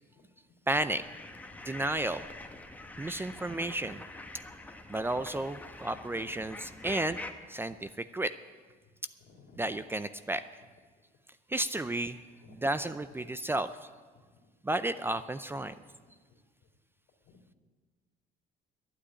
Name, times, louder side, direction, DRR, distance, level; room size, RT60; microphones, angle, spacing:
sound 1, 0.7-7.3, left 2 dB, 10° left, 1.1 m, -45 dB
voice 1, 0.7-1.0 1.6-2.2 3.0-4.0 4.9-7.2 7.5-8.3 9.6-10.4 11.5-12.2 12.5-13.7 14.6-15.7, right 1 dB, 15° right, 12 dB, 0.5 m, -32 dB
voice 2, 9.2-9.7 14.4-14.5 16.3-16.4 17.3-17.4, left 4 dB, 70° left, 3 dB, 2.6 m, -57 dB
11.5 x 10.0 x 9.6 m, 1.4 s
cardioid pair, 110°, 17 cm